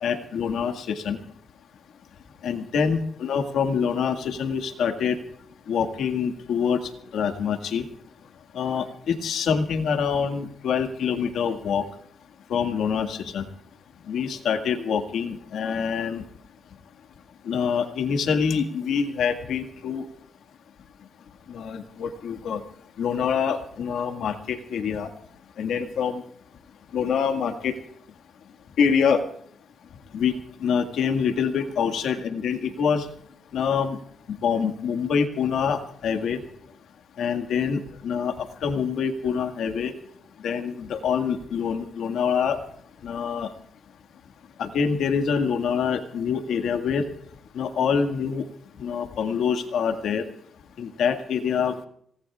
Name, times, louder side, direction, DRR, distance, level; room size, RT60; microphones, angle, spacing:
voice 1, 0.0-1.2 2.4-5.2 5.7-6.8 7.1-7.8 8.5-11.8 12.5-13.4 14.1-16.2 17.5-20.0 21.5-22.6 23.0-25.1 25.6-26.2 26.9-27.7 28.8-29.2 30.1-30.3 30.6-33.1 33.5-34.0 34.4-36.4 37.2-39.9 40.4-42.6 43.0-43.5 44.6-47.0 47.5-48.5 48.8-50.2 50.8-51.9, left 6 dB, 80° left, 6 dB, 1.8 m, -25 dB
27.0 x 18.5 x 2.4 m, 0.63 s
cardioid pair, 85°, 0 cm